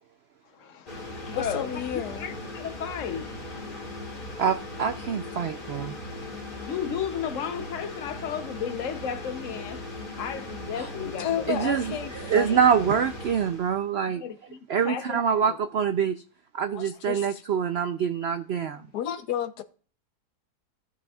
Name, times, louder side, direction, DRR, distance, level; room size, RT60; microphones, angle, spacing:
voice 1, 0.5-1.8 2.1-3.9 6.6-11.7 14.2-15.6, left 8 dB, 60° left, 1.0 m, -34 dB
sound 1, 0.9-13.9, left 2 dB, 30° left, 1.8 m, -39 dB
voice 2, 1.3-2.2 11.0-13.0 16.7-17.4 18.8-19.6, left 10 dB, 80° left, 1.3 m, -32 dB
voice 3, 4.4-5.9 11.5-14.2 14.7-16.2 16.5-18.8, right 7 dB, 70° right, 0.6 m, -25 dB
15.5 x 6.1 x 2.3 m
omnidirectional pair, 1.7 m